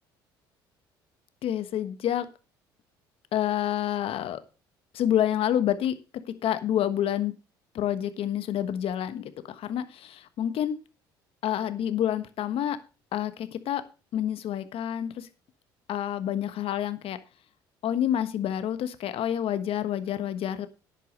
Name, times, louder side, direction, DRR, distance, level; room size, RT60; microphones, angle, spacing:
voice 1, 1.4-2.3 3.3-4.4 4.9-7.3 7.7-10.7 11.4-12.8 13.1-13.8 14.1-15.3 15.9-17.2 17.8-20.7, left 10 dB, 60° left, 11 dB, 1.3 m, -28 dB
10.0 x 8.3 x 5.3 m, 0.33 s
hypercardioid pair, 70°, 11 cm